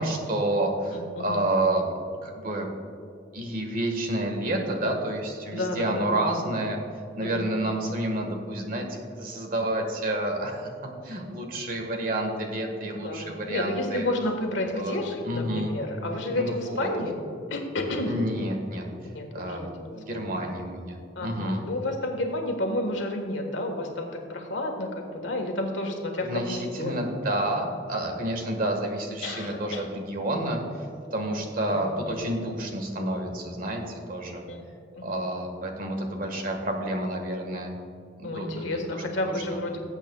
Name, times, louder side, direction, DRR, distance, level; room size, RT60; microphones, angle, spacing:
voice 1, 0.0-1.9 2.2-2.7 3.3-6.8 7.1-10.7 11.0-14.0 14.7-15.0 15.2-15.8 16.4-16.9 18.0-18.9 19.3-19.6 19.9-21.6 26.2-30.9 31.1-34.4 35.0-37.7 38.2-38.5 39.2-39.6, right 1 dB, 50° right, 3 dB, 1.6 m, -29 dB
voice 2, 0.9-1.5 5.5-6.1 7.2-7.5 12.8-17.2 17.5-18.1 19.1-20.4 21.1-27.2 29.2-29.9 31.7-32.3 34.5-34.6 34.9-35.2 38.2-39.8, left 1 dB, 85° left, 3 dB, 1.5 m, -31 dB
19.0 x 8.1 x 2.3 m, 2.5 s
head